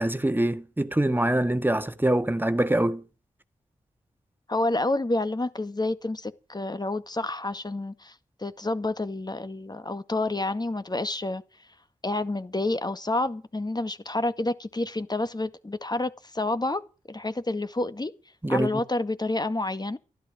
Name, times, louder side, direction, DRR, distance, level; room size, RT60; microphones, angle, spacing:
voice 1, 0.0-3.0 18.4-18.7, right 1 dB, 15° right, 1.6 m, -24 dB
voice 2, 4.5-8.1 8.4-11.4 12.0-16.8 17.1-18.1 18.5-20.0, left 2 dB, 30° left, 1.9 m, -29 dB
13.5 x 12.0 x 6.3 m
cardioid pair, 40°, 13 cm